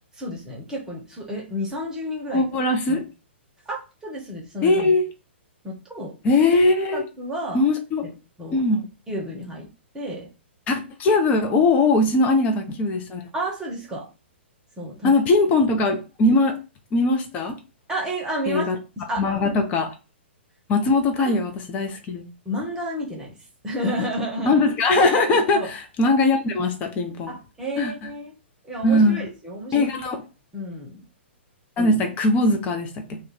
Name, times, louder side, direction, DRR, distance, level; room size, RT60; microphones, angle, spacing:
voice 1, 0.1-2.5 2.9-3.1 3.7-4.9 5.6-6.1 6.9-7.6 8.0-8.1 8.4-8.6 9.1-9.7 9.9-10.3 13.3-14.1 14.8-15.2 15.4-15.5 17.9-18.7 19.0-19.5 21.2-21.4 22.4-23.4 23.6-24.6 25.5-25.7 27.3-28.3 28.6-29.9 30.5-31.0, equal, 10° right, 0.9 m, -31 dB
voice 2, 2.3-3.0 4.6-5.0 6.2-7.0 7.5-8.1 8.5-8.8 10.7-13.2 15.0-16.6 16.9-17.5 18.5-18.8 19.2-19.9 20.7-22.2 24.5-27.3 27.8-27.9 28.8-29.2 29.7-30.2 31.8-33.2, left 2 dB, 20° left, 0.6 m, -20 dB
2.5 x 2.3 x 4.1 m
figure-of-eight pair, 115°, 7 cm